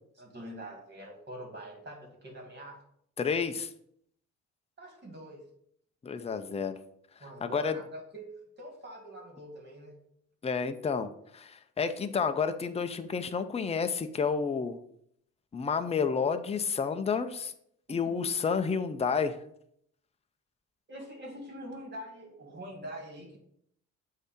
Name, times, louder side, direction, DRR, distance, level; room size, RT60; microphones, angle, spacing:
voice 1, 0.2-2.8 4.8-5.5 7.2-10.0 17.9-18.3 20.9-23.4, right 1 dB, 35° right, 1 dB, 2.2 m, -44 dB
voice 2, 3.2-3.7 6.0-6.8 7.4-7.8 10.4-14.8 15.5-17.5 17.9-19.4, left 5 dB, 20° left, 8 dB, 0.5 m, -30 dB
8.1 x 2.8 x 5.8 m, 0.70 s
cardioid pair, 90°, 30 cm